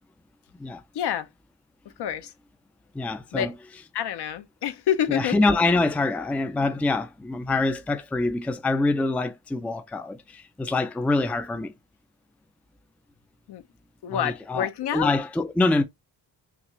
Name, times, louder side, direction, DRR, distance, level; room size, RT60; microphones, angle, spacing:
voice 1, 0.9-1.3 2.0-2.3 3.3-3.5 3.9-5.4 13.5-13.6 14.0-15.1, left 10 dB, 65° left, 0.7 m, -27 dB
voice 2, 2.9-3.5 5.1-11.7 14.1-15.8, left 2 dB, 5° left, 0.4 m, -25 dB
5.9 x 2.4 x 3.0 m
cardioid pair, 130°, 43 cm